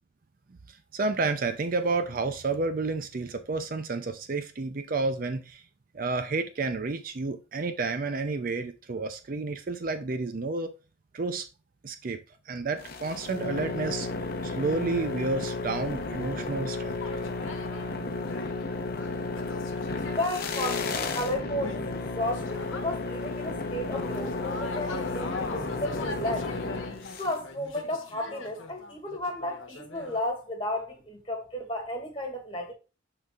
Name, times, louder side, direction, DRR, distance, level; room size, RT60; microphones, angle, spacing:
voice 1, 0.7-5.6 5.9-10.7 11.1-11.5 11.8-12.2 12.5-14.1 14.4-17.0, right 3 dB, 45° right, 0.5 m, -30 dB
sound 1, 12.8-27.4, left 3 dB, 50° left, 0.8 m, -33 dB
sound 2, 17.0-17.9 18.2-23.4 23.7-30.2, left 3 dB, 85° left, 1.2 m, -42 dB
voice 2, 20.1-26.5 27.2-32.7, left 1 dB, 25° left, 1.9 m, -33 dB
12.0 x 4.0 x 2.4 m
head